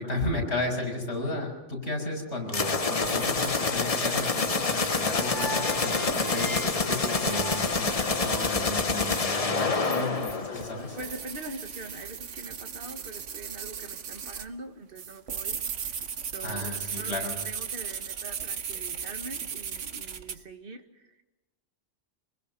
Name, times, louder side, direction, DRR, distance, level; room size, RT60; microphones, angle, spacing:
voice 1, 0.0-11.0 16.4-17.4, left 2 dB, 65° left, 1 dB, 6.3 m, -34 dB
sound 1, 2.5-11.1, left 4 dB, 35° left, 1.0 m, -27 dB
sound 2, 3.0-14.5 15.0-20.4, right 7 dB, 90° right, 1.4 m, -38 dB
sound 3, 4.5-8.7, right 1 dB, ahead, 1.6 m, -41 dB
voice 2, 9.8-10.3 10.9-21.2, right 2 dB, 50° right, 5 dB, 1.9 m, -43 dB
25.5 x 21.5 x 5.5 m, 1.0 s
omnidirectional pair, 1.2 m